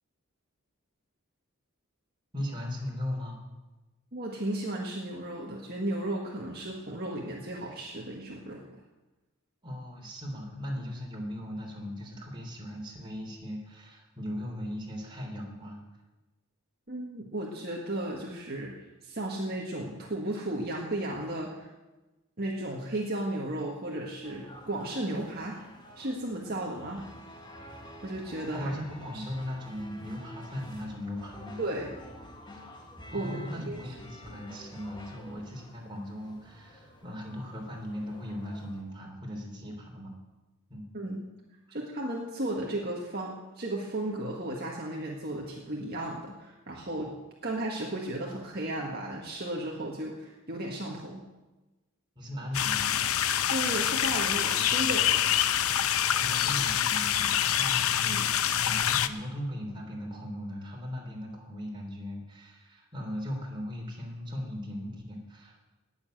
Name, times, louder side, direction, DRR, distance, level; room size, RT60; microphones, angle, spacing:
voice 1, 2.3-3.5 9.6-15.8 28.5-31.6 33.1-40.1 40.7-40.9 41.7-41.8 52.1-53.0 56.1-65.7, equal, 20° right, 0 dB, 3.3 m, -38 dB
voice 2, 4.1-8.8 16.9-21.7 22.4-25.6 26.0-27.0 28.0-28.7 29.1-29.2 31.6-31.9 33.1-33.8 40.9-41.3 41.7-47.1 47.4-51.2 53.5-55.2 58.0-58.3, right 1 dB, 45° right, -2 dB, 1.7 m, -34 dB
sound 1, 24.2-38.8, left 1 dB, 20° left, 1.7 m, -49 dB
sound 2, 52.5-59.1, left 10 dB, 75° left, 0.7 m, -26 dB
18.5 x 7.3 x 9.0 m, 1.1 s
head